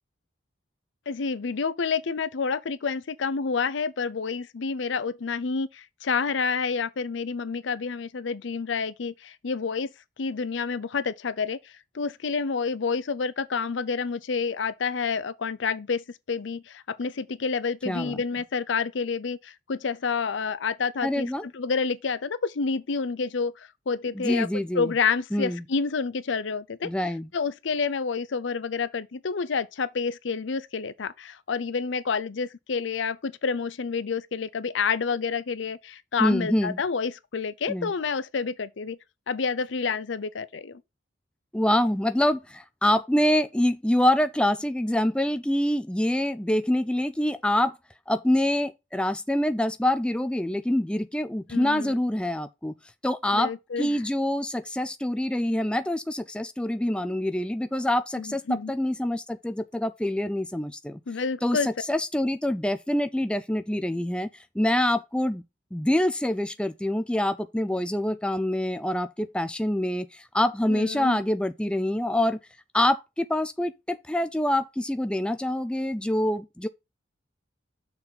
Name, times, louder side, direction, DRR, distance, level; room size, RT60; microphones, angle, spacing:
voice 1, 1.1-9.9 10.2-24.5 24.7-26.9 27.3-39.0 39.3-40.8 51.5-52.0 53.3-54.0 58.2-58.7 61.1-61.7 70.7-71.2, left 5 dB, 80° left, 0.6 m, -29 dB
voice 2, 17.9-18.2 21.0-21.4 24.1-24.9 25.3-25.6 26.8-27.3 36.2-36.8 37.7-37.9 41.5-47.8 48.1-52.7 53.0-53.5 53.8-61.0 61.4-64.3 64.6-65.4 65.7-72.4 72.7-76.7, left 1 dB, 5° left, 0.4 m, -25 dB
6.7 x 4.1 x 5.6 m
head